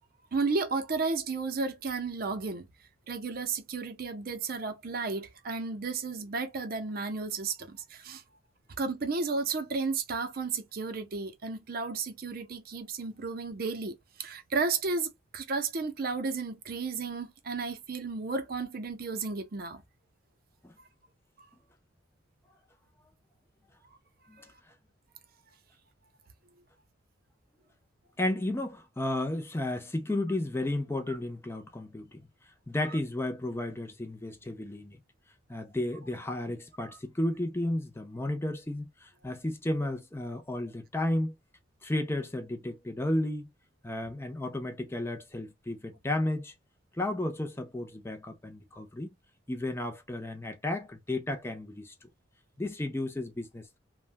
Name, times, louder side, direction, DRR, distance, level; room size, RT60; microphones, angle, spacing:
voice 1, 0.3-2.7 3.1-8.2 8.8-19.8 21.4-21.5 31.1-31.2 36.8-36.9, right 4 dB, 50° right, 0.6 m, -33 dB
voice 2, 28.2-32.3 32.7-35.0 35.5-41.3 41.8-43.5 43.8-46.5 47.0-49.1 49.5-51.9 52.6-53.8, left 1 dB, 15° left, 0.5 m, -33 dB
3.4 x 2.2 x 2.5 m
head